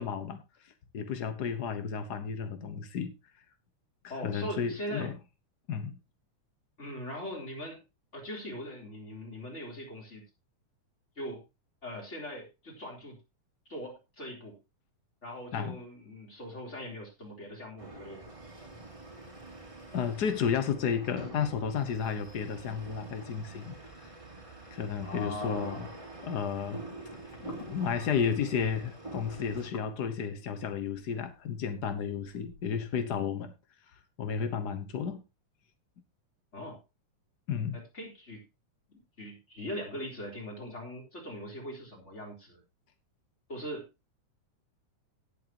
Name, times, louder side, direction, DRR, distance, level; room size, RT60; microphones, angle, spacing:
voice 1, 0.0-3.1 4.2-5.2 5.7-6.0 15.5-15.8 19.9-23.7 24.0-24.1 24.7-25.9 26.2-26.8 27.4-33.5 34.2-35.2 37.5-37.7, left 7 dB, 75° left, 8 dB, 0.9 m, -32 dB
voice 2, 4.1-5.1 6.8-7.8 8.1-10.2 11.2-11.4 11.8-13.2 13.7-14.6 15.2-18.2 25.0-25.8 36.5-36.8 37.7-38.5 38.9-42.6 43.5-43.9, left 1 dB, 20° left, -1 dB, 4.2 m, -41 dB
sound 1, 17.8-29.7, right 2 dB, 10° right, 2.5 m, -46 dB
sound 2, 25.9-32.9, left 4 dB, 45° left, 2.9 m, -53 dB
18.5 x 7.8 x 2.9 m, 0.25 s
omnidirectional pair, 3.4 m